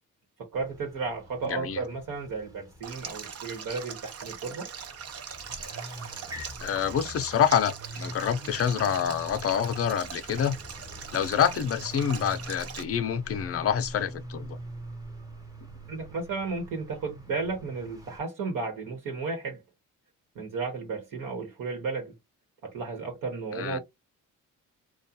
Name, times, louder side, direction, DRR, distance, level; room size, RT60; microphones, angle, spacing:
voice 1, 0.4-4.7 15.9-19.6 20.3-22.1 22.6-23.8, right 4 dB, 70° right, 1.1 m, -33 dB
sound 1, 0.5-18.2, equal, 10° right, 0.8 m, -45 dB
voice 2, 1.5-1.8 6.6-10.6 11.1-14.6 23.6-23.8, left 8 dB, 45° left, 0.6 m, -27 dB
Stream, 2.8-12.8, right 7 dB, 45° right, 0.7 m, -41 dB
2.4 x 2.3 x 2.7 m
cardioid pair, 85°, 34 cm